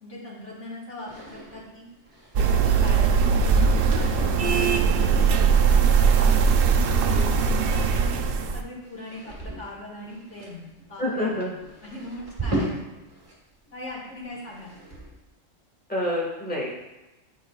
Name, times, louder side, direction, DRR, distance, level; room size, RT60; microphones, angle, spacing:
voice 1, 0.0-1.8 2.4-5.5 6.0-7.3 8.1-8.2 8.5-10.6 10.9-11.3 11.8-12.7 13.7-14.7, left 1 dB, 65° left, -6 dB, 1.9 m, -40 dB
sound 1, 1.1-13.4 13.7-15.3, right 1 dB, 25° right, 1.9 m, -38 dB
sound 2, 2.4-8.6, right 5 dB, 60° right, 0.6 m, -20 dB
voice 2, 11.0-11.5 15.9-16.7, left 1 dB, 5° left, -4 dB, 1.5 m, -27 dB
10.5 x 5.1 x 2.3 m, 1.0 s
omnidirectional pair, 1.3 m